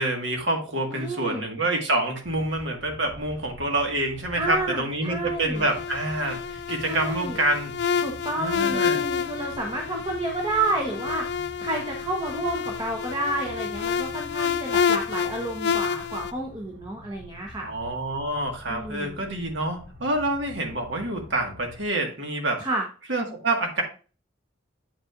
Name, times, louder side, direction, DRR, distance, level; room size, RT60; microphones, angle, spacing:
voice 1, 0.0-7.8 8.4-9.0 17.6-22.7 23.1-23.8, right 2 dB, 75° right, 2 dB, 1.7 m, -27 dB
voice 2, 0.9-1.4 4.4-5.6 6.8-7.4 8.0-11.2 11.6-17.7 18.7-19.2 22.6-22.8, right 2 dB, 25° right, 0 dB, 0.9 m, -30 dB
sound 1, 2.2-21.9, left 1 dB, 55° right, 1.3 m, -46 dB
sound 2, 5.5-16.3, left 7 dB, 60° left, 0.4 m, -29 dB
8.5 x 5.5 x 2.5 m, 0.35 s
head